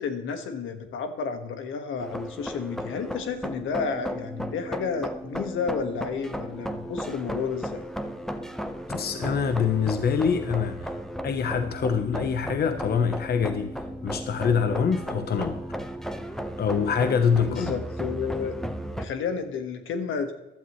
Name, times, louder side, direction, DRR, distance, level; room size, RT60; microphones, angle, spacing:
voice 1, 0.0-7.8 17.5-18.5 18.9-20.3, left 5 dB, 80° left, 7 dB, 1.6 m, -31 dB
sound 1, 2.0-19.1, equal, ahead, 1.0 m, -35 dB
voice 2, 8.9-10.9 11.2-13.7 14.0-15.6 16.6-17.7, left 6 dB, 50° left, 8 dB, 1.0 m, -25 dB
15.0 x 12.0 x 3.2 m, 1.0 s
cardioid pair, 90°, 20 cm